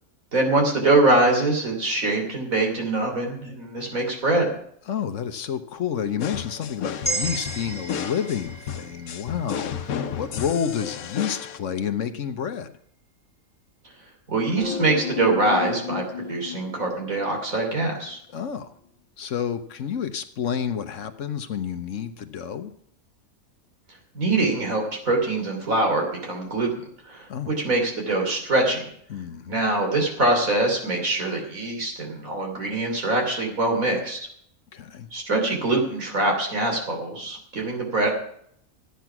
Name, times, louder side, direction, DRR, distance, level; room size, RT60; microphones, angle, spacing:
voice 1, 0.3-4.5 14.3-18.2 24.1-26.7 27.0-28.8 29.5-34.2 35.1-38.1, right 2 dB, 75° right, 1 dB, 3.6 m, -23 dB
voice 2, 4.9-12.7 18.3-18.7 19.2-22.7 27.3-27.5 29.1-29.6 34.7-35.1, left 8 dB, 65° left, 10 dB, 1.2 m, -29 dB
sound 1, 6.2-11.6, left 8 dB, 85° left, 1.3 m, -33 dB
sound 2, 7.0-11.3, right 3 dB, 5° left, 2.0 m, -35 dB
sound 3, 14.6-17.8 18.1-18.2, left 6 dB, 35° left, 1.5 m, -33 dB
14.5 x 9.4 x 6.0 m, 0.67 s
omnidirectional pair, 1.5 m